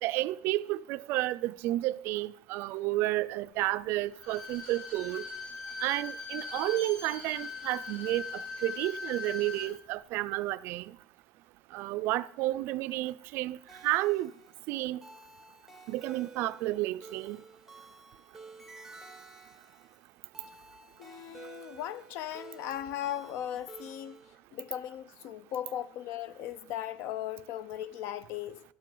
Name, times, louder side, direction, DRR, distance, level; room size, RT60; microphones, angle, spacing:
voice 1, 0.0-5.2 5.8-10.9 11.7-13.6 13.8-14.3 14.7-15.0 15.9-17.4, right 17 dB, 55° right, 0.3 m, -31 dB
Bowed string instrument, 4.1-9.7 10.1-10.2, left 4 dB, 35° left, 2.7 m, -41 dB
sound 1, 13.7-24.4, right 3 dB, 5° right, 0.7 m, -52 dB
voice 2, 21.0-24.2 24.5-28.6, left 11 dB, 60° left, 0.5 m, -38 dB
12.0 x 7.5 x 3.8 m
cardioid pair, 165°, 4 cm